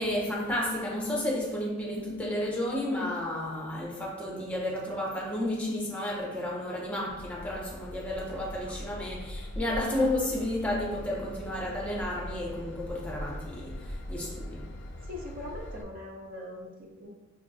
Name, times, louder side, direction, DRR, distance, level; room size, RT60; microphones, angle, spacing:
voice 1, 0.0-14.8, left 1 dB, 5° left, 0.6 m, -32 dB
Train / Engine, 7.1-15.8, left 1 dB, 55° left, 0.4 m, -41 dB
voice 2, 15.0-17.1, left 1 dB, 40° right, 0.7 m, -41 dB
5.3 x 2.2 x 2.6 m
head